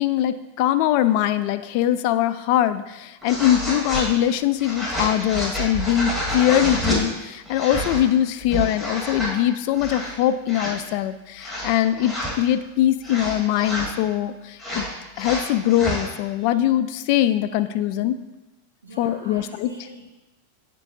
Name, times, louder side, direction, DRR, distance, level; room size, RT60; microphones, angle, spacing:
voice 1, 0.0-14.8 15.2-18.2 19.0-19.7, left 12 dB, 45° left, 11 dB, 0.4 m, -22 dB
sound 1, 3.2-4.1 4.6-7.0 7.5-8.0 8.4-9.3 9.7-10.1 10.5-10.7 11.4-12.3 13.0-13.9 14.6-16.1, equal, ahead, 2.0 m, -28 dB
voice 2, 18.8-20.1, right 1 dB, 75° right, -4 dB, 1.1 m, -43 dB
9.5 x 3.7 x 2.7 m, 1.0 s
figure-of-eight pair, 90°, 0 cm